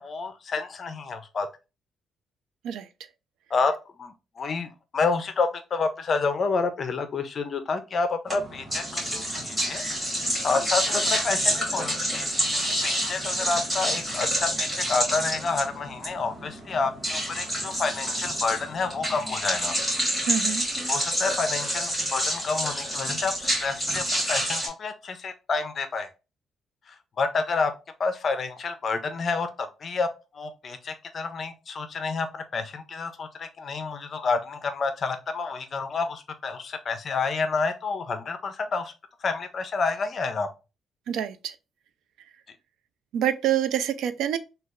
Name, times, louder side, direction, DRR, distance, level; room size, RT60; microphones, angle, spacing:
voice 1, 0.0-1.5 3.5-3.7 4.0-9.8 10.4-12.3 12.6-19.7 20.9-26.1 27.2-27.7 28.0-30.1 30.3-38.9 39.2-40.5, left 4 dB, 35° left, 0.4 m, -29 dB
sound 1, 8.3-24.7, equal, 10° right, 1.6 m, -28 dB
voice 2, 20.2-20.7 41.1-41.6 43.1-44.4, right 10 dB, 85° right, 0.3 m, -26 dB
3.1 x 2.2 x 3.5 m
cardioid pair, 175°, 0 cm